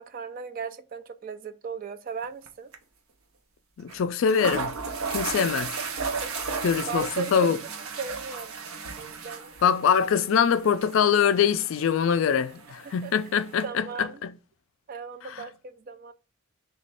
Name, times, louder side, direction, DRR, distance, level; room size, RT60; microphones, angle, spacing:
voice 1, 0.0-2.7 6.0-7.5 8.0-8.5 9.0-9.5 12.8-13.1 13.6-14.2 14.9-16.1, right 5 dB, 40° right, 0.3 m, -37 dB
sound 1, 2.2-2.5 2.7-2.8 3.9-4.0 4.3-13.7, right 5 dB, 85° right, 0.6 m, -35 dB
voice 2, 3.8-4.7 5.1-5.7 6.6-7.0 7.3-7.6 9.6-14.1, left 7 dB, 65° left, 0.3 m, -23 dB
3.0 x 2.3 x 4.2 m
head